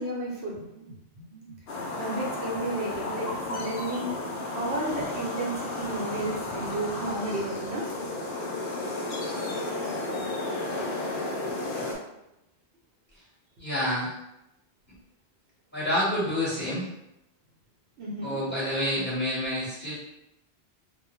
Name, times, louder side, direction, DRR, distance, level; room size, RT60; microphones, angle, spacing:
voice 1, 0.0-1.5 2.0-4.2 4.5-7.9 18.0-18.4, right 1 dB, 75° right, -3 dB, 0.9 m, -33 dB
sound 1, 1.7-12.0, left 2 dB, 70° left, 0.8 m, -33 dB
voice 2, 13.6-14.1 15.7-16.9 18.2-19.9, left 1 dB, 10° left, -10 dB, 1.2 m, -28 dB
2.2 x 2.1 x 3.0 m, 0.87 s
omnidirectional pair, 1.1 m